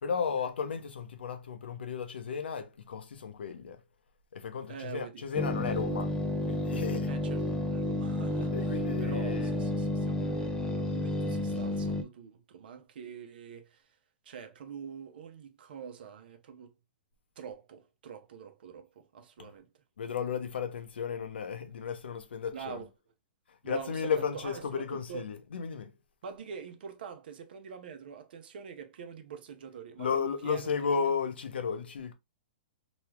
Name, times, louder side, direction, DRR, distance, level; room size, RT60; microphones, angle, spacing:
voice 1, 0.0-3.8 4.3-6.1 6.5-7.1 8.4-9.6 19.4-19.5 20.0-22.8 23.6-25.9 30.0-32.1, left 6 dB, 85° left, 0.7 m, -34 dB
voice 2, 4.7-5.2 7.1-8.5 9.0-13.8 14.3-16.7 17.4-19.7 22.5-22.9 23.6-25.2 26.2-30.7, right 7 dB, 65° right, 0.7 m, -45 dB
sound 1, 5.3-12.0, left 1 dB, 10° left, 0.4 m, -31 dB
3.0 x 2.4 x 3.1 m
hypercardioid pair, 140°, 6 cm